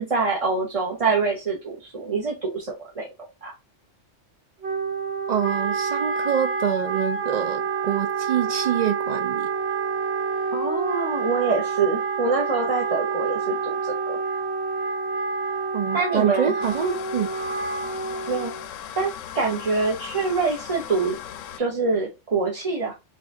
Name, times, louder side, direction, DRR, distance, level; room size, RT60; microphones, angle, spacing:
voice 1, 0.0-3.1 3.4-3.5 10.5-13.7 14.1-14.2 15.9-16.5 18.3-18.5 19.0-21.1 21.6-22.9, right 4 dB, 30° right, 0.9 m, -25 dB
Wind instrument woodwind instrument, 4.6-18.7, right 5 dB, 60° right, 1.2 m, -28 dB
voice 2, 5.3-9.5 15.7-17.3, right 9 dB, 80° right, 0.3 m, -26 dB
sound 1, 16.6-21.6, left 9 dB, 90° left, 1.0 m, -38 dB
5.9 x 2.4 x 3.6 m
omnidirectional pair, 1.3 m